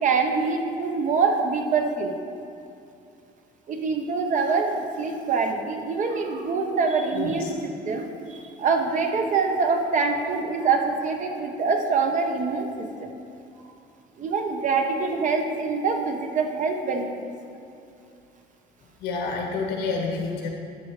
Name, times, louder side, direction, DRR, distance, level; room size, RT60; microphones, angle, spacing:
voice 1, 0.0-2.1 3.7-12.9 14.2-17.1, right 4 dB, 50° right, 4 dB, 1.0 m, -25 dB
voice 2, 7.1-7.5 19.0-20.5, left 4 dB, 90° left, 0 dB, 1.5 m, -28 dB
11.0 x 6.9 x 3.2 m, 2.7 s
cardioid pair, 110°, 17 cm